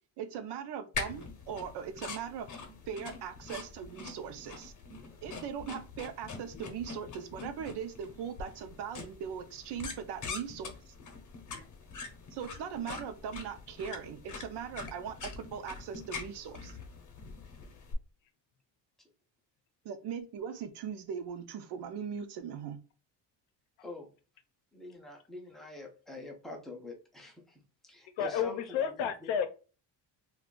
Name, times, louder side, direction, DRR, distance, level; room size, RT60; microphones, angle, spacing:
voice 1, 0.2-2.5 2.9-4.7 5.2-10.9 12.3-16.8 19.8-22.8, right 7 dB, 65° right, 9 dB, 0.6 m, -40 dB
sound 1, 0.9-17.9, left 4 dB, 45° left, 0.8 m, -44 dB
voice 2, 24.7-29.3, left 2 dB, ahead, 0 dB, 0.4 m, -46 dB
voice 3, 28.2-29.5, left 7 dB, 80° left, 9 dB, 0.7 m, -31 dB
2.4 x 2.3 x 3.6 m, 0.35 s
cardioid pair, 155°, 44 cm